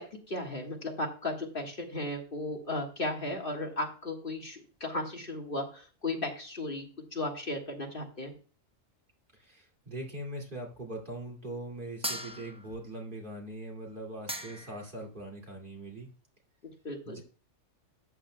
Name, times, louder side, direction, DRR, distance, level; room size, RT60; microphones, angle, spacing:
voice 1, 0.0-6.8 7.1-8.3 16.8-17.2, left 2 dB, 45° left, 2 dB, 1.7 m, -35 dB
voice 2, 9.4-16.1 17.0-17.2, right 1 dB, 40° right, 0 dB, 2.5 m, -41 dB
sound 1, 12.0-12.8 13.9-14.0 14.3-14.9, equal, 5° right, 0.7 m, -38 dB
13.0 x 8.7 x 2.2 m, 0.37 s
omnidirectional pair, 1.3 m